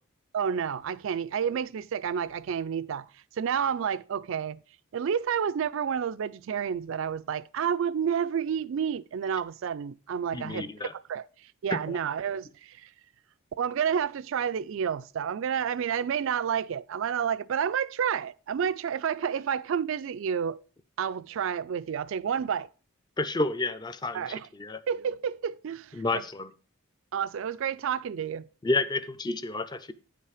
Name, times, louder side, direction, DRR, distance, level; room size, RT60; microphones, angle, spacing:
voice 1, 0.3-4.6 4.9-12.9 13.6-20.6 21.0-22.7 24.1-24.5 24.9-26.2 27.1-28.5, right 7 dB, 60° right, 0.3 m, -30 dB
voice 2, 10.3-10.9 11.7-12.0 23.2-24.2 24.6-24.8 26.0-26.5 28.6-29.9, left 2 dB, 20° left, 0.4 m, -30 dB
8.9 x 5.6 x 4.8 m
head